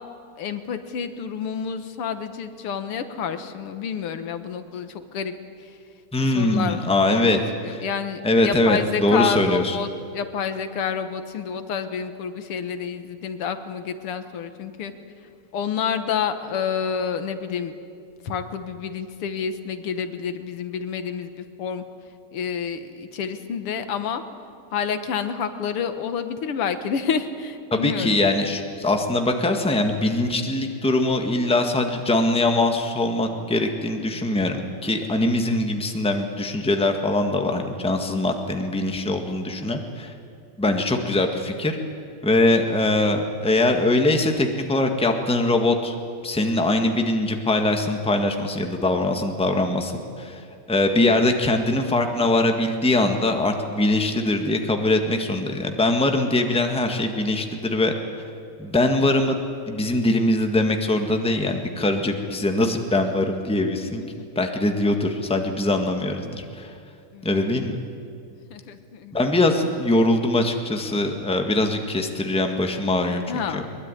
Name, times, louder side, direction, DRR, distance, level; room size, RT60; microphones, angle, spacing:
voice 1, 0.4-5.3 5.6-5.7 6.3-14.9 15.5-17.7 18.2-21.8 22.3-24.2 24.7-28.2 64.0-64.3 67.1-67.3 68.5-69.2 73.3-73.6, left 7 dB, 85° left, 9 dB, 2.2 m, -29 dB
voice 2, 6.1-7.4 7.7-7.8 8.2-9.8 27.7-40.1 40.6-41.8 42.2-45.9 46.2-49.9 50.2-50.4 50.7-57.9 58.6-59.3 59.7-64.0 64.3-66.7 67.2-67.8 69.1-73.6, left 2 dB, 5° left, 4 dB, 1.5 m, -22 dB
22.0 x 21.5 x 9.9 m, 2.4 s
omnidirectional pair, 2.4 m